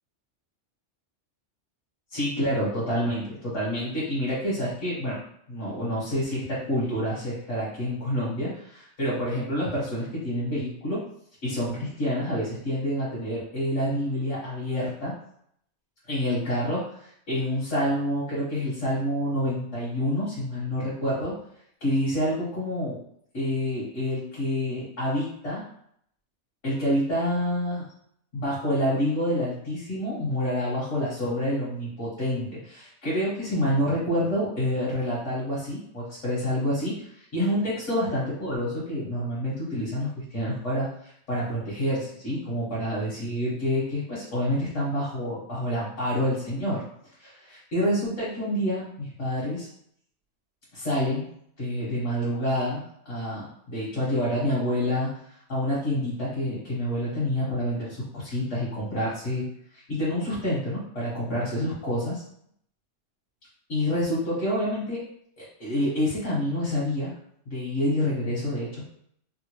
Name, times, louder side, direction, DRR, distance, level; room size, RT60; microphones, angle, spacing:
voice 1, 2.1-5.2 5.5-11.0 11.4-15.1 16.1-21.3 21.8-23.0 23.3-25.6 26.6-27.9 28.3-46.8 47.2-49.7 50.7-51.3 51.6-55.1 55.5-59.5 59.7-62.2 63.7-65.0 65.4-67.1 67.5-68.7, equal, 75° left, -10 dB, 1.7 m, -28 dB
3.4 x 2.5 x 3.1 m, 0.68 s
omnidirectional pair, 1.3 m